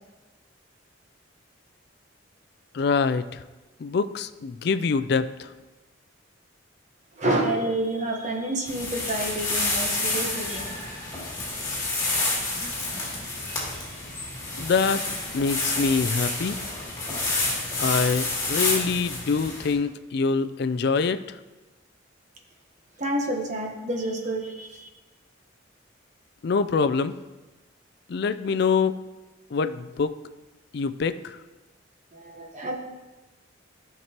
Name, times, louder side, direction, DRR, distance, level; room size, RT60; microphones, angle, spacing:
voice 1, 2.7-3.4 3.8-5.5 14.6-15.0 15.3-16.6 17.8-21.4 26.4-27.1 28.1-29.0 29.5-30.1 30.7-31.4, left 5 dB, 55° left, 12 dB, 0.3 m, -25 dB
voice 2, 7.2-10.7 23.0-24.9 32.1-32.7, right 1 dB, 35° right, 1 dB, 1.1 m, -28 dB
sound 1, 8.7-19.7, left 2 dB, 15° left, 2.5 m, -29 dB
13.5 x 6.0 x 2.9 m, 1.1 s
head